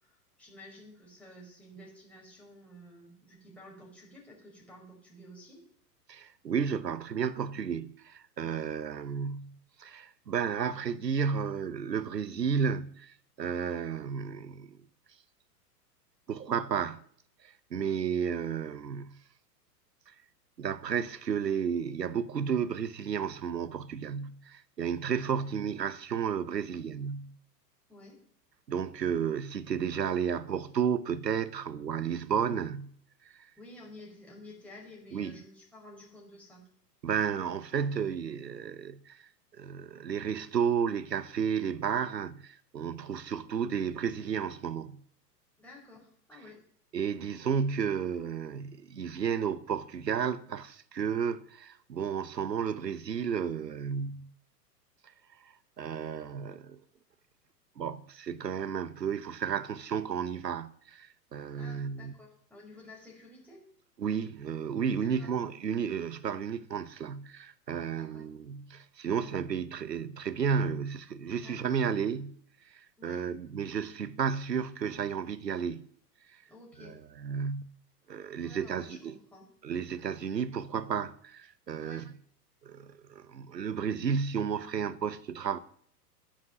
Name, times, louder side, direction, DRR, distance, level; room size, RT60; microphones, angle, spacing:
voice 1, 0.0-5.6 8.4-8.6 17.7-18.0 25.4-25.5 27.9-28.2 33.6-36.6 45.6-46.6 61.5-63.6 65.0-65.3 67.9-68.2 71.4-71.8 73.0-73.3 76.5-76.9 78.4-79.4 81.8-82.1, left 1 dB, 5° left, 4.9 m, -52 dB
voice 2, 6.1-14.8 16.3-17.0 17.7-19.2 20.6-27.3 28.7-32.9 35.1-35.3 37.0-39.2 39.6-45.0 46.9-54.3 55.8-56.8 57.8-62.1 64.0-72.4 72.7-75.8 76.8-77.7 78.1-79.2 79.6-82.1 82.6-85.6, right 7 dB, 80° right, 1.0 m, -32 dB
10.5 x 10.0 x 6.6 m
figure-of-eight pair, 110°, 49 cm